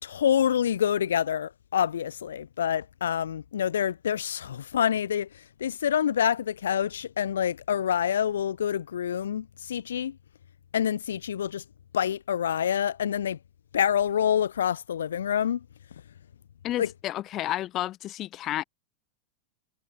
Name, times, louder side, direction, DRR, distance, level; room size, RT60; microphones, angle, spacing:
voice 1, 0.0-10.2 10.7-11.6 11.9-13.4 13.7-15.6 16.8-16.9, left 9 dB, 85° left, 2.0 m, -27 dB
voice 2, 16.6-18.6, left 14 dB, 40° left, 2.9 m, -31 dB
hypercardioid pair, 110°, 0 cm